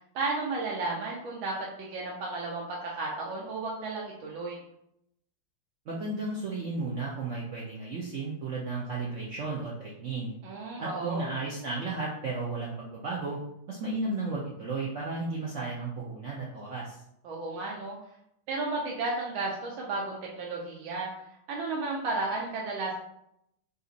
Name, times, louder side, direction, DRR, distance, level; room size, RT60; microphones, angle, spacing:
voice 1, 0.1-4.6 10.4-11.3 17.2-18.0 18.5-21.1 21.5-22.9, right 3 dB, 85° right, -3 dB, 1.5 m, -33 dB
voice 2, 5.9-10.3 10.8-13.4 13.7-17.0, right 3 dB, 65° right, -5 dB, 0.7 m, -34 dB
4.0 x 2.5 x 3.9 m, 0.76 s
omnidirectional pair, 2.1 m